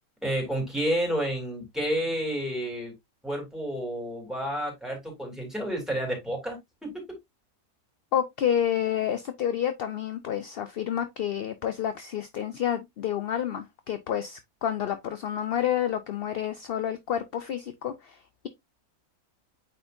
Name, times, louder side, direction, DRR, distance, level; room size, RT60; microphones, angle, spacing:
voice 1, 0.2-2.9 3.2-7.0, equal, ahead, 3.3 m, -30 dB
voice 2, 8.1-18.5, left 9 dB, 55° left, 0.6 m, -29 dB
8.7 x 4.4 x 2.5 m
omnidirectional pair, 1.5 m